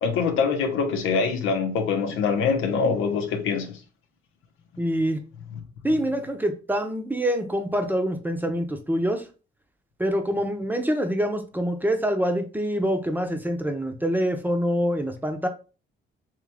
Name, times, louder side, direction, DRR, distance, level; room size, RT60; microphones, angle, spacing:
voice 1, 0.0-3.8, left 5 dB, 90° left, 0.8 m, -24 dB
voice 2, 4.8-5.2 5.8-9.3 10.0-15.5, equal, 10° right, 0.7 m, -25 dB
3.6 x 3.1 x 3.4 m
cardioid pair, 90°, 20 cm